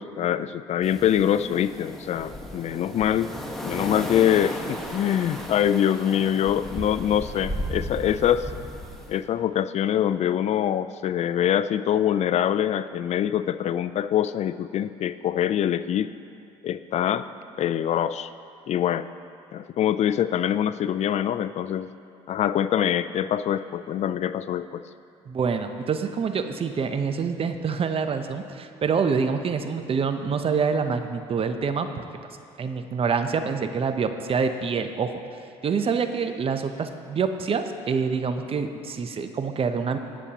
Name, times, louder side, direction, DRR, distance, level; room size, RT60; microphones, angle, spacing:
voice 1, 0.0-3.3 3.6-8.5 9.1-16.1 16.6-17.3 17.6-18.3 18.7-19.1 19.5-21.9 22.3-24.8, left 10 dB, 50° left, 14 dB, 0.4 m, -24 dB
sound 1, 0.8-9.2, equal, ahead, 1.4 m, -35 dB
voice 2, 25.3-32.0 32.6-35.2 35.6-40.0, right 5 dB, 40° right, 8 dB, 0.7 m, -26 dB
19.0 x 7.1 x 2.9 m, 2.4 s
supercardioid pair, 80°, 14 cm